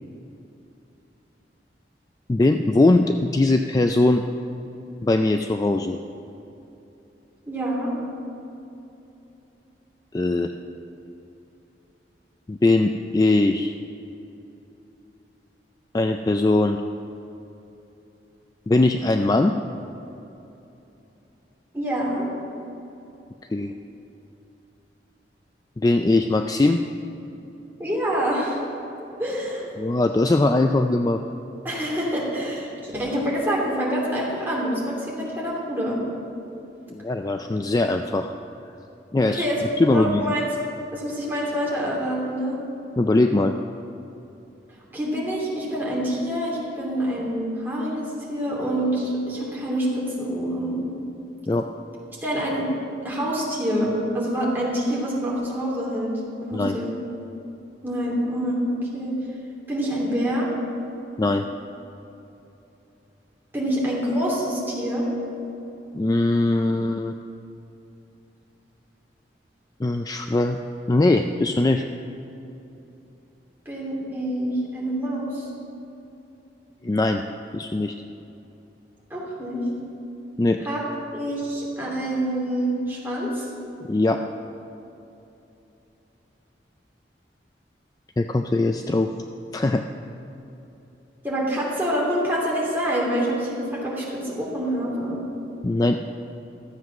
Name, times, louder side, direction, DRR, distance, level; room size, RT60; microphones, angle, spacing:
voice 1, 2.3-4.2 5.0-6.0 10.1-10.5 12.5-13.7 15.9-16.8 18.7-19.6 23.5-23.7 25.8-26.8 29.8-31.2 36.9-38.3 39.1-39.4 39.8-40.2 43.0-43.5 51.5-51.7 56.5-56.8 61.2-61.5 65.9-67.1 69.8-70.6 70.9-71.8 76.8-77.2 77.5-77.9 80.4-80.6 83.9-84.2 88.2-89.1 89.5-89.8 95.6-96.0, left 2 dB, 20° left, 5 dB, 0.3 m, -20 dB
voice 2, 7.5-7.9 21.7-22.2 27.8-28.6 29.2-29.7 31.6-36.0 39.4-40.5 40.9-42.6 44.9-50.8 52.2-52.6 53.0-56.9 57.8-59.1 59.7-60.5 63.5-65.1 73.6-75.5 79.1-79.6 80.6-80.8 81.1-83.5 91.2-95.2, equal, 10° right, -5 dB, 2.9 m, -26 dB
13.5 x 7.8 x 6.0 m, 2.9 s
head